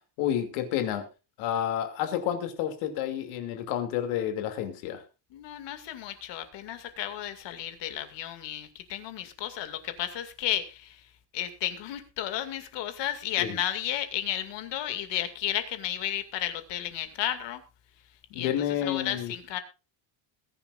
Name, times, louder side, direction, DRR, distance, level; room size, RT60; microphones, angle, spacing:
voice 1, 0.2-1.1 1.4-5.0 13.4-13.6 18.3-19.3, left 10 dB, 90° left, 7 dB, 2.7 m, -30 dB
voice 2, 5.3-11.1 11.3-17.6 18.3-18.5 18.8-19.6, left 12 dB, 60° left, 9 dB, 2.4 m, -33 dB
21.0 x 10.5 x 2.5 m, 0.29 s
cardioid pair, 150°, 47 cm